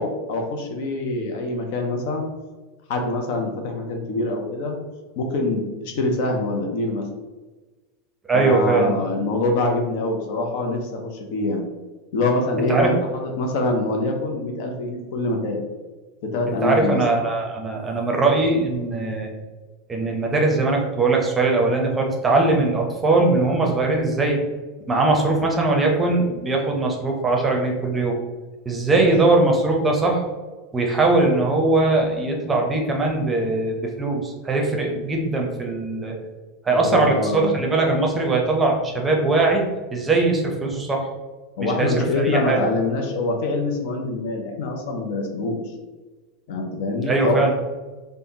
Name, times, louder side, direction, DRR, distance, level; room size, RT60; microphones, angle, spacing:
voice 1, 0.0-2.2 2.9-4.8 5.2-7.1 8.3-11.6 12.1-15.6 16.2-17.0 28.9-29.1 36.7-37.6 41.6-45.6 46.5-47.5, left 2 dB, 60° left, 2 dB, 0.5 m, -25 dB
voice 2, 8.3-9.0 12.7-12.9 16.5-19.3 19.9-24.4 24.9-28.2 28.7-30.2 30.7-36.1 36.6-39.6 39.9-41.1 41.6-42.7 47.1-47.5, right 3 dB, 20° right, 0 dB, 0.6 m, -20 dB
3.3 x 2.1 x 2.7 m, 1.2 s
figure-of-eight pair, 85°, 0 cm